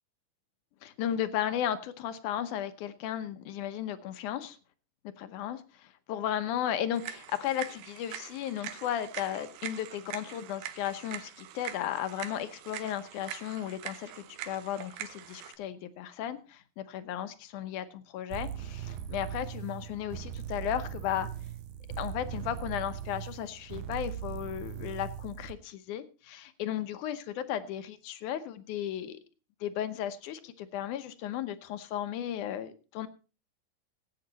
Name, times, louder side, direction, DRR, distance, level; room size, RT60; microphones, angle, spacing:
voice 1, 0.8-4.6 5.2-21.3 22.0-29.2 29.6-33.1, left 10 dB, 70° left, 12 dB, 2.2 m, -35 dB
sound 1, 6.9-15.6, right 11 dB, 90° right, 2.7 m, -43 dB
sound 2, 18.3-25.6, right 10 dB, 75° right, 2.1 m, -39 dB
18.0 x 8.6 x 4.0 m, 0.33 s
omnidirectional pair, 4.0 m